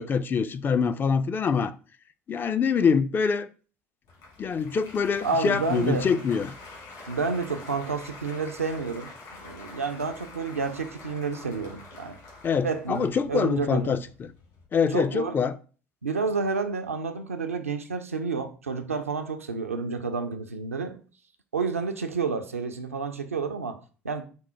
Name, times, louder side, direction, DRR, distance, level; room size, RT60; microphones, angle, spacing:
voice 1, 0.0-1.7 2.3-3.5 4.4-6.5 12.4-14.3 14.7-15.5, left 6 dB, 30° left, 0.3 m, -25 dB
Applause, 4.0-14.6, left 3 dB, 60° left, 1.8 m, -46 dB
voice 2, 5.2-6.2 7.1-9.1 9.4-12.2 12.6-14.0 14.9-15.4 16.0-21.0 21.5-24.2, right 4 dB, 85° right, 0.4 m, -30 dB
4.5 x 2.1 x 4.1 m
figure-of-eight pair, 60°, 7 cm